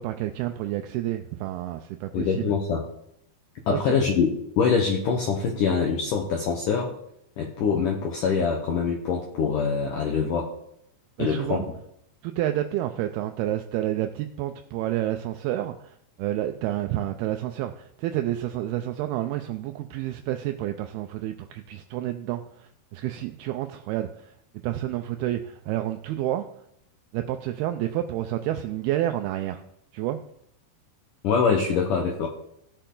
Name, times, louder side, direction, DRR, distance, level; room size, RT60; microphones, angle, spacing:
voice 1, 0.0-2.5 3.7-4.0 11.2-11.7 12.2-24.3 24.6-26.5 27.1-29.6 29.9-30.2, right 13 dB, 85° right, 7 dB, 2.2 m, -29 dB
voice 2, 2.1-2.8 3.7-6.9 7.4-10.5 11.2-11.7 31.2-32.3, left 5 dB, 70° left, 1 dB, 2.1 m, -24 dB
17.0 x 6.8 x 3.8 m, 0.76 s
omnidirectional pair, 5.0 m